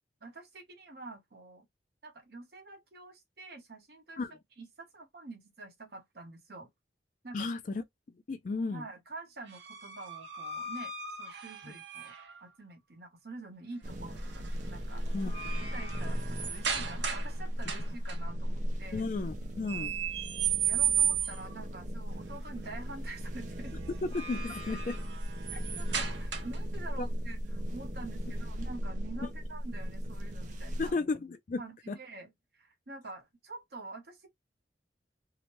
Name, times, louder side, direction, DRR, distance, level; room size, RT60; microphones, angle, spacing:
voice 1, 0.2-1.7 2.0-4.2 4.6-6.7 7.2-7.5 8.7-10.9 11.2-12.1 12.4-15.0 15.7-19.1 20.6-23.8 25.5-30.9 31.6-34.3, right 3 dB, 60° right, 0.9 m, -47 dB
voice 2, 7.3-7.8 8.3-8.8 11.6-11.7 15.1-15.3 18.9-19.9 23.9-24.9 27.0-27.1 30.8-31.6 31.9-32.0, left 3 dB, 45° left, 0.4 m, -33 dB
sound 1, 9.5-12.4 14.2-14.5 14.9-17.3 17.6-18.2 19.7-21.6 23.9-26.7, right 8 dB, 90° right, 0.8 m, -34 dB
sound 2, 13.8-30.9, equal, 45° right, 0.5 m, -37 dB
2.8 x 2.1 x 2.9 m
head